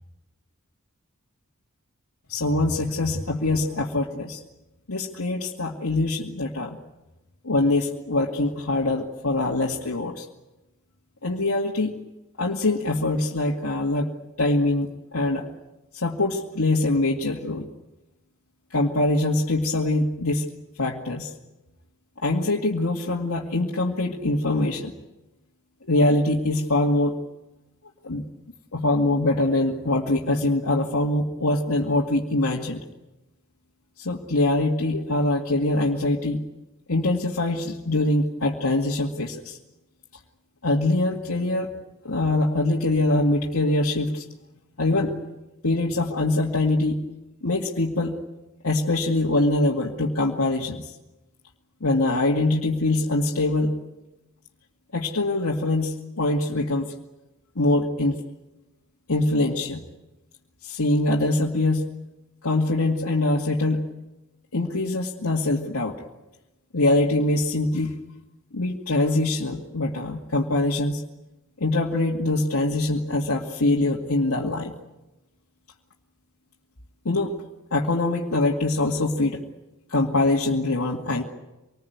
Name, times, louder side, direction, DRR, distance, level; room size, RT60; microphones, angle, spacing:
voice 1, 2.3-4.4 4.9-6.8 7.4-10.3 11.2-11.9 12.4-14.1 14.4-15.5 15.9-17.7 18.7-20.5 20.8-21.3 22.2-24.9 25.8-27.2 28.0-28.3 28.7-32.8 34.0-36.4 36.9-39.6 40.6-41.7 42.0-44.2 44.8-45.1 45.6-47.0 47.4-48.2 48.6-50.9 51.8-53.7 54.9-56.9 57.6-58.2 59.1-59.8 60.6-61.9 62.4-63.9 64.5-65.9 66.7-68.0 68.5-71.0 71.6-74.7 77.0-77.3 77.7-79.4 79.9-81.2, left 2 dB, 85° left, -2 dB, 2.2 m, -23 dB
26.5 x 19.5 x 9.4 m, 1.0 s
head